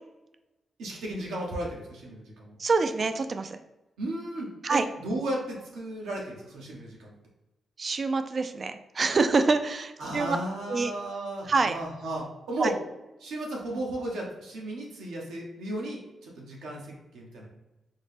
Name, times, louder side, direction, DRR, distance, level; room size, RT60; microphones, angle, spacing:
voice 1, 0.8-2.6 4.0-7.1 10.0-12.7 13.2-17.5, right 1 dB, 90° right, -2 dB, 0.9 m, -35 dB
voice 2, 2.6-3.6 4.6-4.9 7.8-10.4 10.7-10.9 11.5-11.8 12.6-12.7, right 4 dB, 50° right, 9 dB, 0.3 m, -26 dB
4.1 x 2.1 x 3.4 m, 0.98 s
cardioid pair, 60°, 0 cm